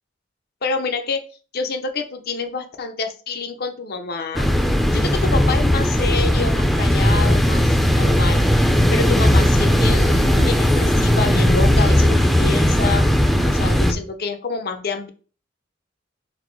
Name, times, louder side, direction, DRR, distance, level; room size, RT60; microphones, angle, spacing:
voice 1, 0.6-1.2 1.5-4.5 4.9-8.4 8.9-13.0 13.4-15.1, left 4 dB, 55° left, 7 dB, 0.6 m, -27 dB
sound 1, 4.3-13.9, equal, ahead, 0.4 m, -17 dB
4.0 x 2.0 x 4.5 m, 0.39 s
head